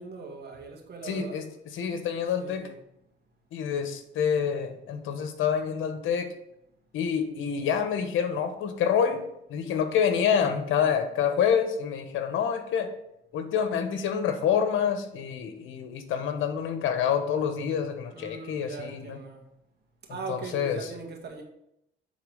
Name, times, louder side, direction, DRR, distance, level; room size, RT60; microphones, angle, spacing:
voice 1, 0.0-1.4 2.4-2.7 18.1-19.5 20.1-21.4, right 4 dB, 55° right, 2.1 m, -40 dB
voice 2, 1.0-1.4 1.7-2.7 3.5-6.3 6.9-9.2 9.5-12.9 13.3-19.2 20.3-20.8, left 7 dB, 85° left, 1.1 m, -27 dB
9.4 x 3.9 x 5.1 m
cardioid pair, 90°, 20 cm